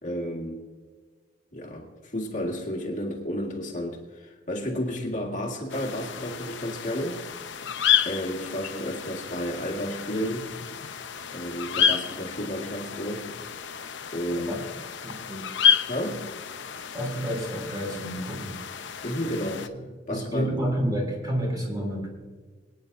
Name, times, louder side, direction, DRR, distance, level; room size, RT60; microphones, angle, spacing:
voice 1, 0.0-0.6 1.5-7.2 8.1-10.5 11.3-13.3 14.1-14.6 15.9-16.3 19.0-19.7 20.1-20.5, equal, 40° left, 0 dB, 1.9 m, -32 dB
sound 1, 5.7-19.7, left 8 dB, 70° left, 0.7 m, -30 dB
voice 2, 15.0-15.5 16.9-18.6 19.2-19.3 20.1-22.1, equal, 20° right, 0 dB, 3.2 m, -30 dB
23.0 x 9.8 x 2.6 m, 1.4 s
head